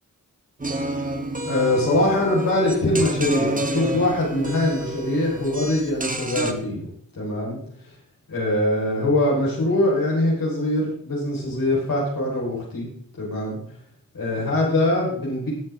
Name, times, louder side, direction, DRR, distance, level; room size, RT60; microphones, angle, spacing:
sound 1, 0.6-6.5, right 1 dB, 25° right, 1.8 m, -29 dB
voice 1, 1.4-6.9 7.2-7.6 8.3-12.9 13.2-13.6 14.1-15.5, left 1 dB, 90° left, -6 dB, 4.9 m, -22 dB
19.0 x 7.8 x 3.7 m, 0.63 s
cardioid pair, 60°, 33 cm